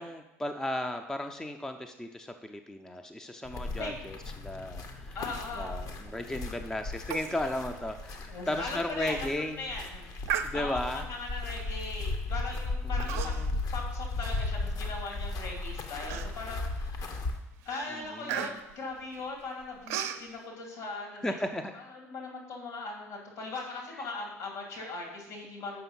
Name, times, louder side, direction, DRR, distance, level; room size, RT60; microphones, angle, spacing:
voice 1, 0.0-5.2 5.6-9.6 10.4-11.0 12.8-13.5 17.9-18.5 21.2-21.7, left 1 dB, 5° left, 6 dB, 0.5 m, -35 dB
sound 1, 3.4-17.4, left 3 dB, 45° left, 0.9 m, -36 dB
voice 2, 5.1-5.8 8.3-9.3 9.6-17.1 17.6-21.4 21.7-25.8, left 3 dB, 65° left, 0 dB, 2.5 m, -39 dB
Human voice, 7.1-7.4 7.7-7.8 8.4-8.5 9.0-9.3 10.2-11.0 11.7-12.0 13.0-13.6 14.0-15.0 15.5-15.6 16.1-16.6 17.1-17.4 17.6-20.2, right 9 dB, 65° right, 0.5 m, -36 dB
6.8 x 5.5 x 5.4 m, 0.95 s
figure-of-eight pair, 65°, 8 cm